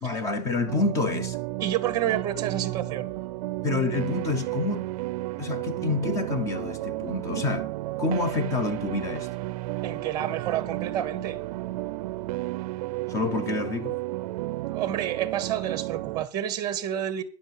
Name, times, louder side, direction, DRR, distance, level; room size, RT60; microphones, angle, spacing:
voice 1, 0.0-1.4 3.6-4.9 5.4-7.7 8.0-9.3 13.1-14.0, left 3 dB, 15° left, 0.7 m, -28 dB
sound 1, 0.7-16.3, right 19 dB, 60° right, 0.5 m, -32 dB
voice 2, 1.6-3.1 9.8-11.4 14.7-17.2, right 11 dB, 20° right, 1.2 m, -29 dB
10.5 x 7.5 x 7.5 m
supercardioid pair, 180°, 21 cm